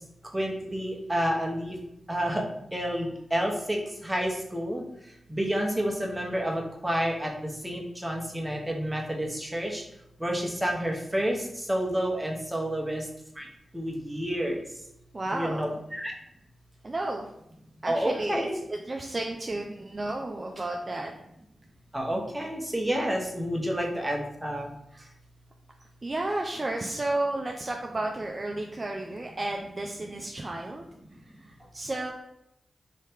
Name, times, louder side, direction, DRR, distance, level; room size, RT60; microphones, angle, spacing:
voice 1, 0.3-1.8 2.1-2.4 2.7-4.8 5.3-9.8 10.2-13.1 13.4-13.5 13.7-14.6 15.2-16.1 17.9-18.6 21.9-24.7, equal, 15° right, -1 dB, 1.0 m, -29 dB
voice 2, 15.1-15.8 16.8-17.3 17.8-21.1 24.9-25.1 26.0-30.8 31.4-32.1, right 2 dB, 40° right, 1 dB, 0.4 m, -32 dB
3.2 x 2.8 x 3.4 m, 0.81 s
cardioid pair, 40°, 0 cm